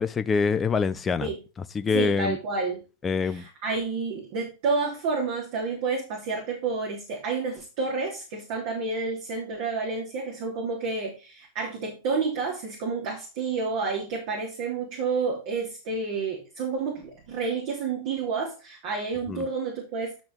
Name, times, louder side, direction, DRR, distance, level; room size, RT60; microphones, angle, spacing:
voice 1, 0.0-1.3 1.7-2.4 3.0-3.4 19.3-19.5, left 5 dB, 20° left, 0.7 m, -25 dB
voice 2, 1.9-2.8 3.2-20.2, right 4 dB, 55° right, 3.2 m, -30 dB
10.5 x 6.1 x 4.0 m
hypercardioid pair, 100°, 0 cm